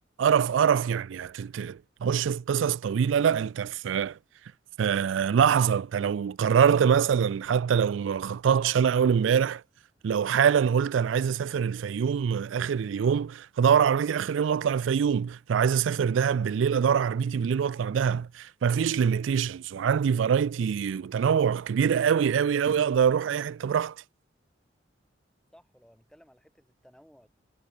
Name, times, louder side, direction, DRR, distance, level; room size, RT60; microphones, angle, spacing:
voice 1, 0.2-4.2 4.8-9.6 10.0-24.0, right 7 dB, 90° right, 0.4 m, -24 dB
voice 2, 25.5-27.3, equal, 5° left, 4.4 m, -57 dB
head